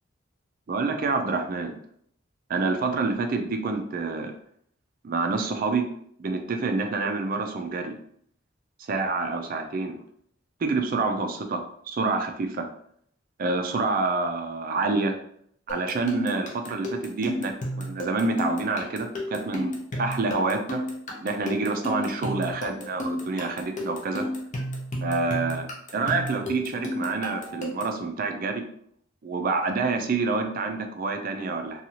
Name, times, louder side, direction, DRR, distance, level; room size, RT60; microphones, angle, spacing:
voice 1, 0.7-1.7 2.5-4.3 5.0-5.8 6.2-8.0 8.9-10.0 10.6-12.7 13.4-15.2 15.7-19.7 20.0-20.8 21.2-24.2 25.0-25.7 25.9-28.6 29.2-31.8, right 3 dB, 45° right, 4 dB, 0.4 m, -27 dB
sound 1, 15.7-28.0, equal, 40° left, 0.6 m, -33 dB
2.7 x 2.3 x 2.8 m, 0.67 s
head